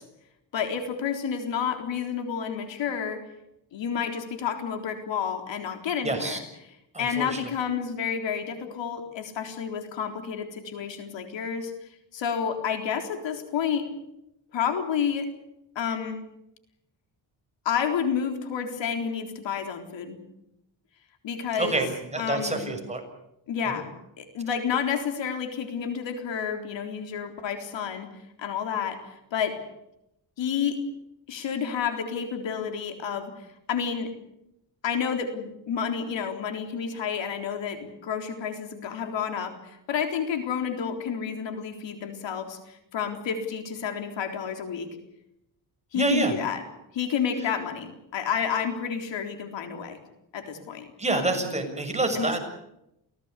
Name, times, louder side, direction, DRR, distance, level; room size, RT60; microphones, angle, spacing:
voice 1, 0.5-3.2 3.7-6.4 7.0-11.7 12.1-13.9 14.5-15.3 15.8-16.2 17.7-20.2 21.2-21.8 22.2-22.7 23.5-23.9 24.2-28.1 28.4-29.6 30.4-30.8 31.3-33.3 33.7-34.1 34.8-44.9 45.9-46.6 46.9-50.0 50.3-50.9 51.1-51.2 52.2-52.4, left 7 dB, 80° left, 6 dB, 3.9 m, -30 dB
voice 2, 6.0-6.4 6.9-7.5 21.5-23.0 23.7-23.8 45.9-46.4 51.0-52.4, right 2 dB, 15° right, 4 dB, 6.7 m, -27 dB
28.5 x 17.5 x 8.3 m, 0.84 s
cardioid pair, 110°, 44 cm